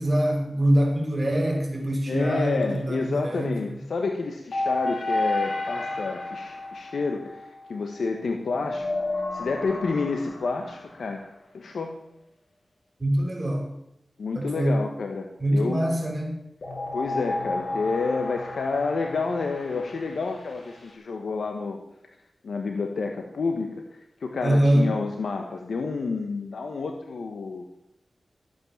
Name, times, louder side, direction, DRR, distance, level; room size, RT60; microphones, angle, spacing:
voice 1, 0.0-3.5 13.0-13.7 14.3-14.8 15.4-16.3 24.4-24.9, right 1 dB, 30° right, 1 dB, 5.3 m, -24 dB
voice 2, 2.1-8.9 9.3-11.2 11.5-12.0 14.2-15.9 16.9-21.8 22.4-23.8 24.2-27.6, left 4 dB, 85° left, 4 dB, 1.3 m, -29 dB
sound 1, 4.5-8.1 8.6-11.1 16.6-20.9, left 2 dB, 65° left, 4.9 m, -32 dB
14.5 x 8.9 x 7.3 m, 0.81 s
cardioid pair, 55°, 0 cm